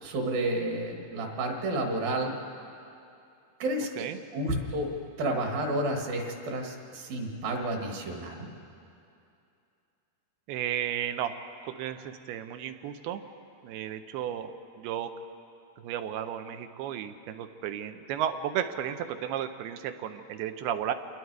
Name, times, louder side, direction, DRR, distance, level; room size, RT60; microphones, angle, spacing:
voice 1, 0.0-2.4 3.6-3.9 4.3-4.9 5.2-8.5, right 1 dB, 65° right, 2 dB, 3.5 m, -30 dB
voice 2, 10.5-11.4 11.6-13.2 13.6-15.1 15.8-20.9, right 10 dB, 90° right, 8 dB, 2.8 m, -34 dB
28.0 x 20.0 x 4.7 m, 2.6 s
omnidirectional pair, 4.5 m